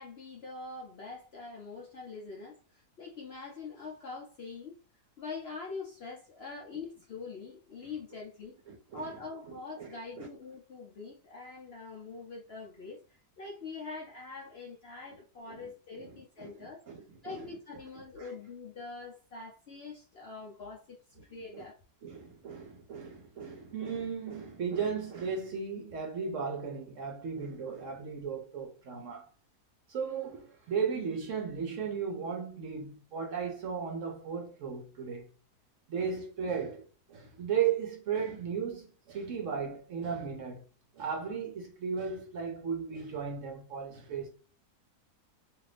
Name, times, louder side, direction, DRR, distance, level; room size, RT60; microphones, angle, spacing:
voice 1, 0.0-4.8 5.2-8.5 8.9-16.8 17.2-21.0 21.3-21.8, left 4 dB, 65° left, 0.6 m, -44 dB
voice 2, 8.7-9.1 9.5-10.3 15.5-15.7 15.9-17.5 18.2-18.3 21.5-21.6 22.0-29.3 29.9-35.2 35.9-40.7 40.9-44.3, right 6 dB, 65° right, 0.8 m, -36 dB
2.7 x 2.4 x 3.2 m
omnidirectional pair, 1.6 m